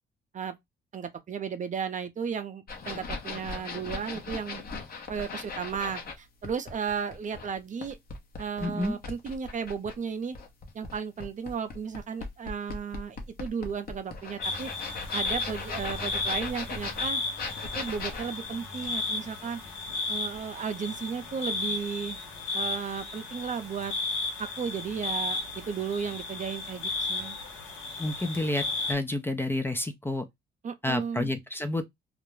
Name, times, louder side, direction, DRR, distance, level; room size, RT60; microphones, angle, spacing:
voice 1, 0.9-4.6 5.1-8.0 8.4-10.4 10.7-14.7 15.1-17.2 17.7-19.6 20.1-22.2 22.5-23.9 24.4-27.4 30.6-31.3, right 6 dB, 40° right, 0.5 m, -34 dB
sound 1, 2.7-6.1 6.4-10.0 10.3-20.0 20.3-20.4, left 4 dB, 50° left, 0.8 m, -38 dB
voice 2, 8.6-9.0 28.0-30.2 30.8-31.8, left 2 dB, 10° left, 0.4 m, -30 dB
sound 2, 14.4-28.9, left 3 dB, 80° left, 0.9 m, -34 dB
2.4 x 2.1 x 3.0 m
cardioid pair, 90°, 20 cm